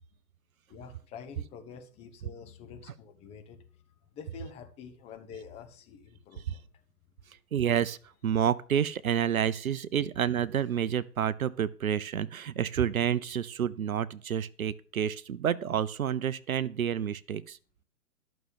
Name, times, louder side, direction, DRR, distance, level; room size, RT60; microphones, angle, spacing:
voice 1, 0.7-3.6 4.1-6.8, left 6 dB, 15° left, 1.0 m, -47 dB
voice 2, 7.5-8.0 8.2-17.6, right 9 dB, 60° right, 0.9 m, -29 dB
12.5 x 6.6 x 7.2 m
figure-of-eight pair, 135°, 47 cm